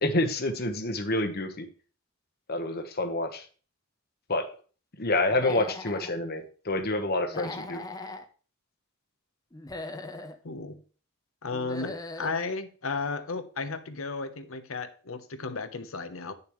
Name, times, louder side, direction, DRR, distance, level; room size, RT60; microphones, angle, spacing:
voice 1, 0.0-1.7 2.5-3.5 4.3-4.5 5.0-7.8 11.8-11.9, left 2 dB, 50° left, 1.1 m, -28 dB
Human voice / Animal, 5.3-6.1 7.3-8.2 9.5-10.4 11.5-12.4, left 2 dB, 20° left, 0.7 m, -39 dB
voice 2, 10.4-10.8 11.4-16.3, left 4 dB, 75° left, 0.9 m, -34 dB
10.5 x 6.8 x 3.1 m
head